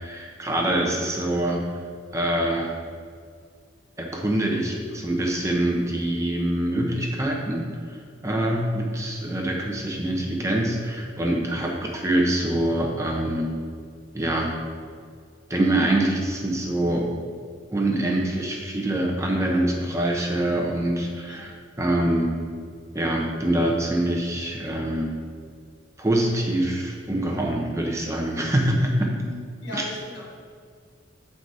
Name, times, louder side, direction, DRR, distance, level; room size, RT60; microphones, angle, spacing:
voice 1, 0.0-1.6 2.1-2.7 4.0-7.7 8.2-13.5 14.1-14.6 15.5-17.1 17.7-21.5 21.8-22.3 22.9-25.1 26.0-29.1 29.7-29.9, right 1 dB, 15° right, -1 dB, 0.7 m, -24 dB
voice 2, 29.0-30.2, left 2 dB, 70° left, -4 dB, 1.8 m, -38 dB
7.3 x 4.8 x 4.0 m, 2.1 s
head